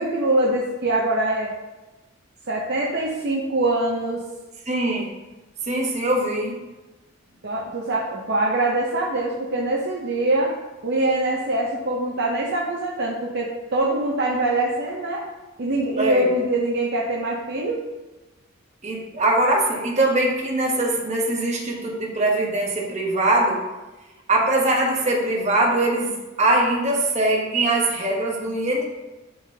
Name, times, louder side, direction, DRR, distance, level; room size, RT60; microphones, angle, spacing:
voice 1, 0.0-1.5 2.5-4.2 7.4-10.5 10.8-15.2 15.6-17.8, right 2 dB, 55° right, -2 dB, 0.7 m, -23 dB
voice 2, 4.7-5.1 5.6-6.6 16.0-16.3 18.8-23.6 24.3-28.8, right 2 dB, 35° right, -1 dB, 1.2 m, -22 dB
11.0 x 3.7 x 2.8 m, 1.1 s
head